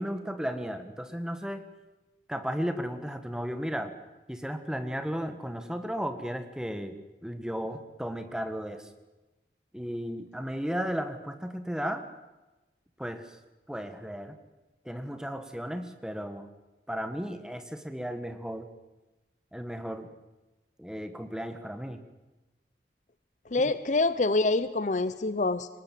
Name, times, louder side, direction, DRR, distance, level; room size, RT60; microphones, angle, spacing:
voice 1, 0.0-1.7 2.3-3.9 4.3-8.9 9.7-12.0 13.0-13.4 13.7-14.3 14.8-16.5 16.9-18.7 19.5-20.1 20.8-22.0 23.6-23.7, equal, 5° right, 8 dB, 1.5 m, -34 dB
voice 2, 23.5-25.7, left 3 dB, 45° left, 14 dB, 0.6 m, -26 dB
23.0 x 19.5 x 7.5 m, 1.1 s
head